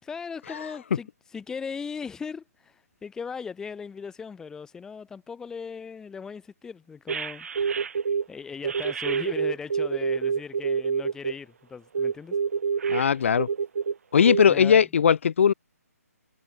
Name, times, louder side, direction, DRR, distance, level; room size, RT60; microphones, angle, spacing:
voice 1, 0.0-7.5 8.3-12.4 14.5-14.8, left 5 dB, 5° left, 2.5 m, -38 dB
sound 1, 7.1-8.2 8.6-11.3 11.9-13.9 14.2-14.4, right 6 dB, 60° right, 6.3 m, -27 dB
voice 2, 12.9-13.5 14.1-15.5, left 7 dB, 50° left, 0.7 m, -19 dB
figure-of-eight pair, 150°, 9 cm